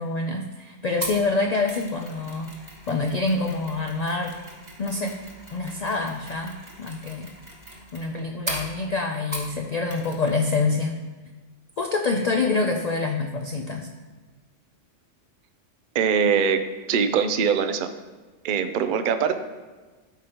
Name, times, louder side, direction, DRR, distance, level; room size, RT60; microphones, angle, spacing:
voice 1, 0.0-4.4 4.8-5.2 5.5-7.3 7.9-10.9 11.8-13.9, left 3 dB, 65° left, 3 dB, 0.4 m, -26 dB
Mechanisms, 1.0-9.6 9.9-10.4 10.6-10.7, right 1 dB, 25° right, 1.2 m, -39 dB
voice 2, 15.9-16.6 16.9-17.9 18.4-19.3, right 7 dB, 55° right, 9 dB, 0.6 m, -22 dB
12.5 x 5.0 x 2.9 m, 1.3 s
omnidirectional pair, 1.3 m